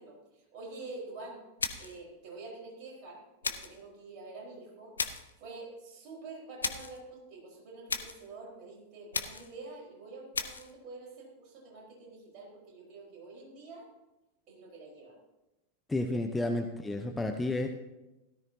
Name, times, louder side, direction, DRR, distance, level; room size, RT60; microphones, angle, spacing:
voice 1, 0.0-1.4 1.8-4.9 5.4-13.9 14.5-15.1, right 3 dB, 40° right, -2 dB, 4.6 m, -47 dB
sound 1, 1.6-2.0 3.4-3.8 5.0-5.3 6.6-7.0 7.9-8.3 9.1-9.6 10.3-10.7, left 4 dB, 75° left, 0.7 m, -35 dB
voice 2, 15.9-17.7, left 2 dB, 10° left, 5 dB, 0.8 m, -31 dB
16.5 x 13.0 x 2.8 m, 1.0 s
figure-of-eight pair, 90°, 0 cm